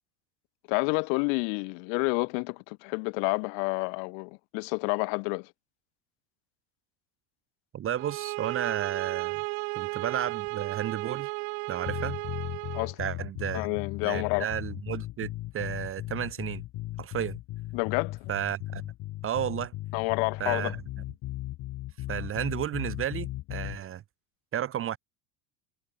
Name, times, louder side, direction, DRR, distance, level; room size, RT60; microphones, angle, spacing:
voice 1, 0.7-5.5 12.7-13.0 13.5-14.5 17.7-18.3 19.9-20.7, left 40 dB or more, 75° left, 1.0 m, -29 dB
voice 2, 7.7-9.4 9.8-11.3 11.7-12.2 13.0-13.7 14.0-16.6 17.0-17.4 18.3-18.8 19.2-19.7 20.4-20.8 22.1-24.0 24.5-25.0, right 10 dB, 30° right, 0.8 m, -32 dB
sound 1, 8.0-12.9, right 38 dB, 75° right, 3.5 m, -34 dB
sound 2, 11.9-23.8, left 16 dB, 55° left, 2.6 m, -37 dB
supercardioid pair, 115°, 43 cm